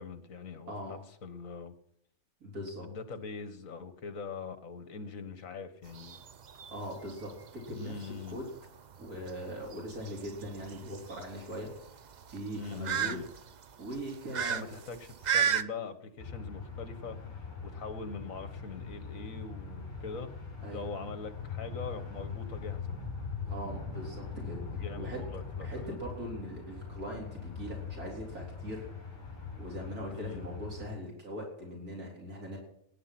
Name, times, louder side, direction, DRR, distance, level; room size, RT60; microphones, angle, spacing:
voice 1, 0.0-1.7 2.8-6.2 7.8-8.4 12.5-13.3 14.4-20.3 20.7-23.1 24.7-26.0 30.1-30.5, left 4 dB, 65° left, 11 dB, 1.6 m, -42 dB
voice 2, 0.7-1.0 2.4-2.8 6.5-8.5 9.0-11.7 12.3-13.2 13.8-14.8 20.6-20.9 23.5-25.2 25.6-28.9 29.6-32.6, equal, 85° right, -1 dB, 4.3 m, -41 dB
sound 1, 5.9-15.6, right 8 dB, 55° right, 0.5 m, -35 dB
sound 2, 16.2-30.9, left 5 dB, 20° left, 5.2 m, -41 dB
18.0 x 9.9 x 5.9 m, 0.72 s
omnidirectional pair, 1.5 m